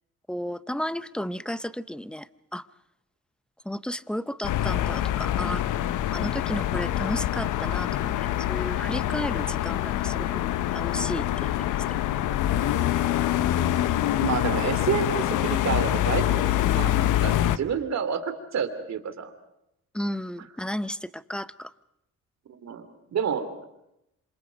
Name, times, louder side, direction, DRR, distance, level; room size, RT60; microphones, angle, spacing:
voice 1, 0.3-2.7 3.6-5.7 6.1-10.4 10.7-11.8 19.9-21.7, equal, 5° left, 14 dB, 0.8 m, -33 dB
sound 1, 4.4-17.6, left 12 dB, 85° left, 0.9 m, -25 dB
voice 2, 14.2-19.3 22.6-23.7, right 7 dB, 60° right, 8 dB, 3.1 m, -29 dB
27.5 x 27.0 x 5.2 m, 0.84 s
cardioid pair, 90°, 30 cm